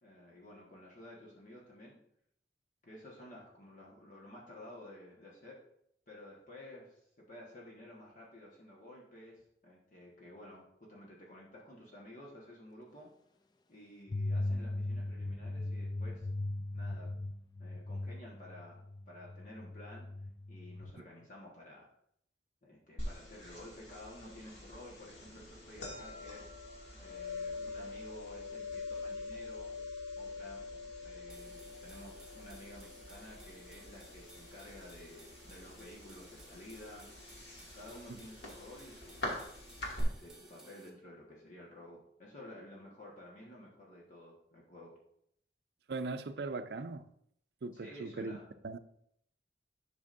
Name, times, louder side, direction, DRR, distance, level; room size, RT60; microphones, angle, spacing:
voice 1, 0.0-2.0 2.8-5.6 6.1-13.1 13.7-16.3 16.7-17.1 17.6-20.1 20.5-21.9 22.6-29.7 30.1-37.3 37.7-39.4 40.0-44.9 47.7-48.5, left 1 dB, 45° left, 1.4 m, -52 dB
sound 1, 14.1-20.9, left 2 dB, 25° left, 0.3 m, -39 dB
sound 2, 23.0-40.0, left 2 dB, 85° left, 2.3 m, -45 dB
sound 3, 31.3-40.9, right 2 dB, 5° right, 1.0 m, -58 dB
voice 2, 45.9-47.1 47.6-48.4 48.6-48.8, right 3 dB, 70° right, 0.5 m, -39 dB
10.5 x 6.1 x 2.6 m
head